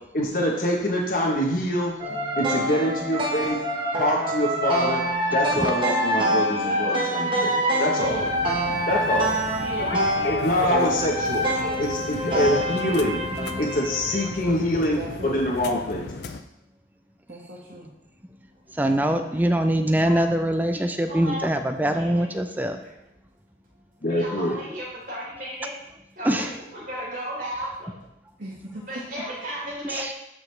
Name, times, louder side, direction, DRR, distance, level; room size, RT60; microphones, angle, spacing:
voice 1, 0.1-1.9 2.4-3.6 4.0-5.0 5.3-7.5 7.8-8.2 8.9-9.3 10.2-11.5 11.8-13.2 13.6-16.3 24.0-24.5, left 1 dB, 45° left, -2 dB, 1.0 m, -25 dB
sound 1, 2.0-14.4, right 1 dB, 25° right, 1.0 m, -26 dB
voice 2, 6.6-7.0 8.0-8.3 9.6-10.0 11.5-11.8 12.3-12.6 13.7-13.8 18.9-19.5 20.0-20.3 21.0-21.4 21.9-22.4 22.8-22.9 24.1-25.7 26.1-27.9 28.9-30.1, right 1 dB, 50° right, -5 dB, 3.5 m, -35 dB
voice 3, 7.2-8.1 14.9-15.4 17.3-17.9 28.4-28.8, right 1 dB, 75° right, -6 dB, 1.4 m, -38 dB
sound 2, 8.0-16.4, left 3 dB, 65° left, 0.5 m, -36 dB
voice 4, 18.8-22.8 26.2-26.5 29.9-30.1, right 1 dB, 10° right, 7 dB, 0.5 m, -23 dB
12.5 x 5.0 x 3.3 m, 0.87 s
head